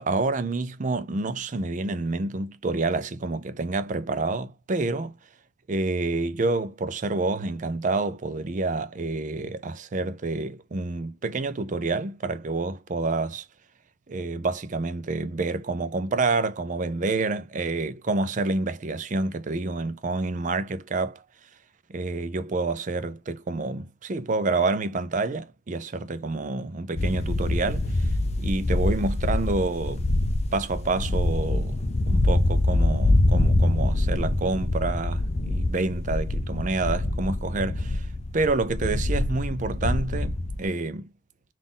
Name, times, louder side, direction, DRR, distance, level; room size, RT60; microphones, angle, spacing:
voice 1, 0.0-5.2 5.7-13.4 14.1-21.2 21.9-28.1 28.4-30.2 30.5-38.1 38.3-41.1, right 3 dB, 40° right, 0.5 m, -28 dB
sound 1, 27.0-40.6, left 2 dB, 35° left, 0.4 m, -25 dB
3.9 x 2.5 x 3.7 m
head